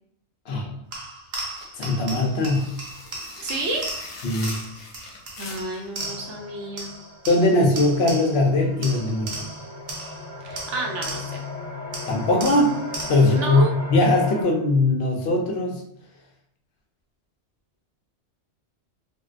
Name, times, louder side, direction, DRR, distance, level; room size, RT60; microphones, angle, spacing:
voice 1, 0.5-0.8 1.8-2.7 4.2-4.5 7.3-9.4 12.1-12.7 13.1-15.8, left 2 dB, 65° left, 0 dB, 0.8 m, -20 dB
sound 1, 0.9-6.5 6.8-8.5 8.8-11.5 11.9-13.4, right 2 dB, 60° right, 0.9 m, -36 dB
sound 2, 1.4-5.9, left 3 dB, 90° left, 1.0 m, -42 dB
voice 2, 3.4-3.8 5.4-6.9 10.4-11.4 13.3-13.7, right 2 dB, 85° right, 1 dB, 1.0 m, -31 dB
sound 3, 6.0-14.4, left 2 dB, 35° right, 0.7 m, -37 dB
3.6 x 2.1 x 2.4 m, 0.72 s
omnidirectional pair, 1.2 m